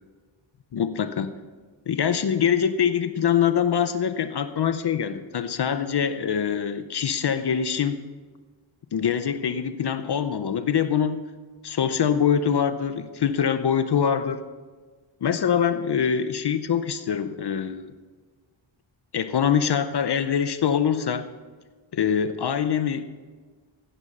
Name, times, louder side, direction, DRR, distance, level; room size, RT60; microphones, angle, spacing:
voice 1, 0.7-1.3 1.9-8.0 8.9-11.2 11.6-14.4 15.2-17.9 19.1-21.3 21.9-23.0, left 8 dB, 60° left, 11 dB, 0.8 m, -24 dB
15.5 x 11.5 x 5.4 m, 1.4 s
wide cardioid pair, 135°, 46 cm